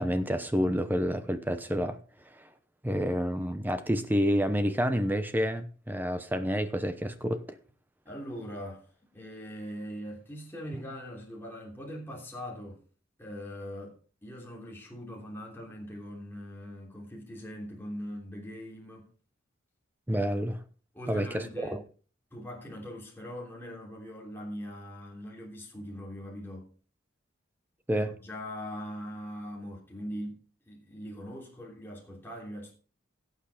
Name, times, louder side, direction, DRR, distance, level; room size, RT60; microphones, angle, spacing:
voice 1, 0.0-2.0 2.3-2.5 2.8-7.6 20.1-20.6 21.1-21.8 27.9-28.1, equal, 10° right, 0.8 m, -29 dB
voice 2, 8.0-8.9 9.1-12.8 13.2-14.0 14.2-19.1 20.9-21.9 22.3-26.7 27.9-32.7, equal, 10° left, 3.1 m, -41 dB
17.0 x 6.6 x 5.0 m
head